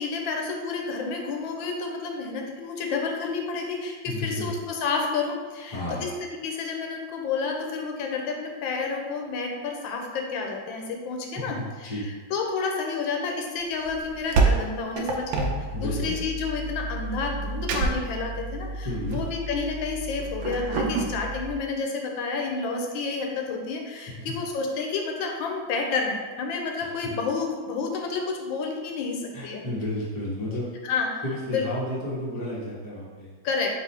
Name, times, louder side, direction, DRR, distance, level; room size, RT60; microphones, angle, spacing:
voice 1, 0.0-6.1 6.4-29.6 30.8-31.7 33.4-33.7, left 4 dB, 85° left, 1 dB, 1.4 m, -30 dB
voice 2, 4.1-4.5 5.7-6.1 11.8-12.0 15.7-16.2 18.8-19.2 29.3-30.7 31.2-33.3, left 1 dB, 20° left, -6 dB, 0.6 m, -31 dB
sound 1, 13.9-21.6, right 3 dB, 75° right, 1.2 m, -29 dB
3.9 x 3.0 x 4.2 m, 1.4 s
omnidirectional pair, 2.1 m